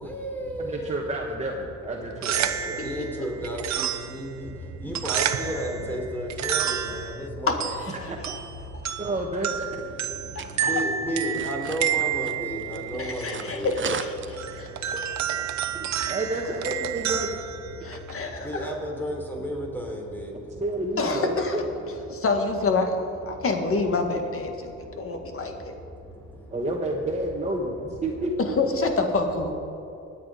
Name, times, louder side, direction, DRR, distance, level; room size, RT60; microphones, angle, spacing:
voice 1, 0.0-1.4 2.1-13.8 14.2-16.5 17.0-17.3 17.6-21.3 21.8-22.3 22.7-26.6 27.6-28.1, equal, 5° left, 0 dB, 3.6 m, -35 dB
voice 2, 0.6-2.8 7.9-8.3 9.0-9.7 15.7-17.4 20.6-21.6 26.5-28.3, right 2 dB, 20° right, -2 dB, 1.4 m, -30 dB
sound 1, 2.0-18.3, right 9 dB, 65° right, 0.9 m, -31 dB
voice 3, 7.7-8.1 8.8-8.9 10.3-10.7 13.0-14.9 16.0-16.1 17.8-18.7 21.0-21.6 22.1-25.5 28.6-29.5, left 3 dB, 45° left, 4 dB, 1.9 m, -27 dB
sound 2, 9.8-14.8, right 7 dB, 40° right, 0.8 m, -39 dB
20.5 x 8.5 x 5.1 m, 2.7 s
cardioid pair, 90°, 30 cm